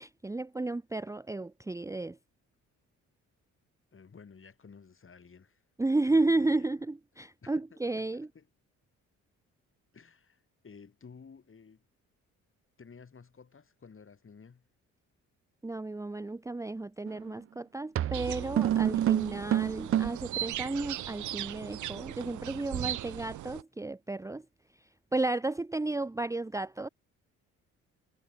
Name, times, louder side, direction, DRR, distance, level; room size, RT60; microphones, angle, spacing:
voice 1, 0.0-2.2 5.8-8.3 15.6-24.5 24.8-26.9, right 2 dB, 10° right, 0.7 m, -33 dB
voice 2, 3.9-5.6 6.1-6.8 7.4-8.5 9.9-11.8 12.8-14.7, left 5 dB, 40° left, 7.4 m, -54 dB
sound 1, 17.1-17.3 18.0-20.3, right 11 dB, 45° right, 0.5 m, -28 dB
sound 2, 18.1-23.6, right 14 dB, 65° right, 0.8 m, -38 dB
supercardioid pair, 65°, 32 cm